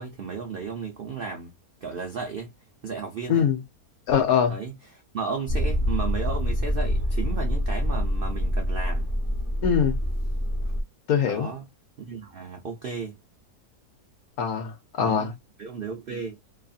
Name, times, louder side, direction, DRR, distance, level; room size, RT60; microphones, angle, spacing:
voice 1, 0.0-1.5 1.8-2.5 2.8-3.5 4.5-9.1 11.3-11.6 12.0-13.2 15.0-16.4, right 5 dB, 65° right, 0.5 m, -34 dB
voice 2, 4.1-4.5 9.6-10.0 11.1-11.5 14.4-15.3, left 7 dB, 70° left, 1.2 m, -23 dB
Motor vehicle (road), 5.5-10.8, equal, 20° right, 0.7 m, -26 dB
3.0 x 2.6 x 2.4 m
omnidirectional pair, 1.7 m